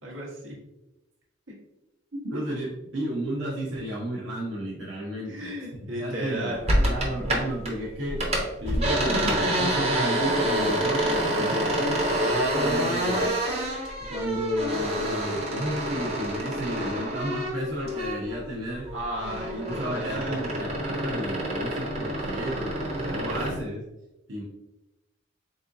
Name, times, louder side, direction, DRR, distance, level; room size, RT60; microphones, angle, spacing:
voice 1, 0.0-0.6 1.5-1.6 2.3-2.4 5.2-6.7 11.2-11.7 18.9-20.5, equal, 90° right, -3 dB, 1.3 m, -35 dB
voice 2, 2.2-8.2 8.6-12.0 12.6-13.3 14.1-18.9 19.5-23.9 24.3-24.4, right 1 dB, 70° right, -5 dB, 0.8 m, -33 dB
sound 1, 6.7-7.7 8.0-18.4 18.7-23.6, right 1 dB, 30° right, 0.7 m, -27 dB
4.1 x 3.8 x 2.5 m, 0.96 s
head